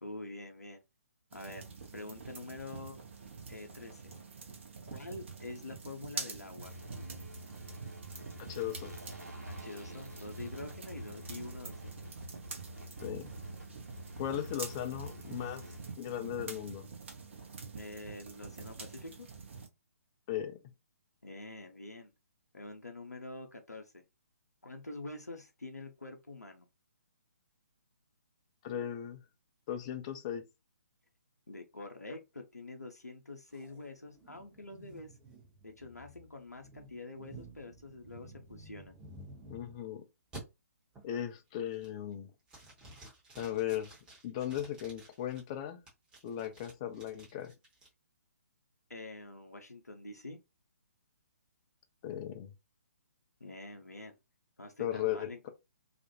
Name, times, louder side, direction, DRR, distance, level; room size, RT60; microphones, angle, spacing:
voice 1, 0.0-0.8 1.3-1.6 1.9-3.0 3.5-4.0 4.9-6.7 9.5-12.1 17.7-19.3 21.2-22.1 22.5-24.0 24.6-26.7 31.5-35.1 35.6-39.0 48.9-50.4 53.4-54.2 54.6-55.5, left 2 dB, 80° left, 0.6 m, -46 dB
sound 1, 1.3-19.7, right 4 dB, 45° right, 0.7 m, -46 dB
sound 2, 6.6-15.9, equal, 80° right, 1.0 m, -47 dB
voice 2, 8.4-8.9 13.0-13.3 14.2-15.7 16.0-16.9 20.3-20.6 28.6-29.2 29.7-30.4 39.5-40.1 41.0-42.3 43.4-43.9 44.2-45.8 46.2-47.5 52.0-52.5 54.8-55.5, left 11 dB, 20° left, 0.4 m, -37 dB
sound 3, 33.5-39.8 40.3-40.4 40.9-41.3 41.7-42.1 42.5-45.4 45.9-47.9, right 2 dB, 10° right, 0.8 m, -53 dB
2.4 x 2.1 x 2.8 m
figure-of-eight pair, 135°, 9 cm